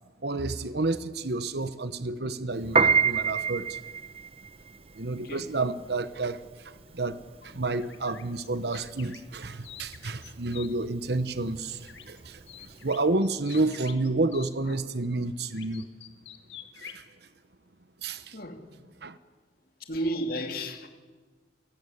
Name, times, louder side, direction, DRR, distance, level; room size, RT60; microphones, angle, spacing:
voice 1, 0.2-3.8 4.9-15.9 16.8-17.0 18.0-18.4 19.0-19.2, right 2 dB, 60° right, 1.0 m, -30 dB
Piano, 2.6-13.0, right 6 dB, 30° right, 0.8 m, -29 dB
voice 2, 5.1-5.5 14.7-14.8 18.3-18.6 19.9-20.9, right 1 dB, 50° left, 2.8 m, -33 dB
sound 1, 7.8-10.7 11.8-12.2 12.5-14.5 15.5-17.0, left 9 dB, 80° left, 1.9 m, -47 dB
27.5 x 16.0 x 9.9 m
head